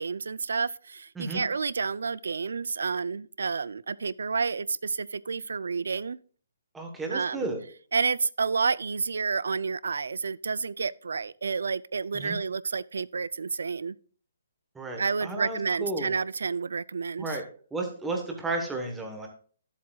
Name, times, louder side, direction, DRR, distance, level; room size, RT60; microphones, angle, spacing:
voice 1, 0.0-6.2 7.1-7.5 7.9-14.0 15.0-17.4, right 5 dB, 90° right, 0.3 m, -30 dB
voice 2, 6.7-7.6 12.1-12.4 14.7-16.1 17.2-17.4 17.7-19.3, right 2 dB, 5° right, 1.0 m, -33 dB
11.5 x 7.5 x 2.3 m
hypercardioid pair, 170°, 0 cm